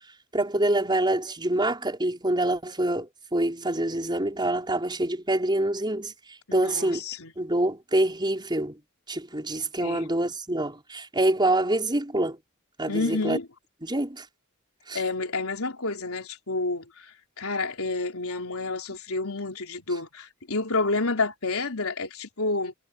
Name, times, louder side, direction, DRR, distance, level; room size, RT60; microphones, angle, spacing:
voice 1, 0.3-6.1 6.5-7.0 7.4-8.8 9.1-12.4 12.8-13.4 13.8-14.2 14.9-15.0, right 1 dB, 20° right, 5.3 m, -26 dB
voice 2, 6.5-7.3 9.8-10.1 12.9-13.5 14.9-22.7, left 3 dB, 85° left, 3.8 m, -29 dB
head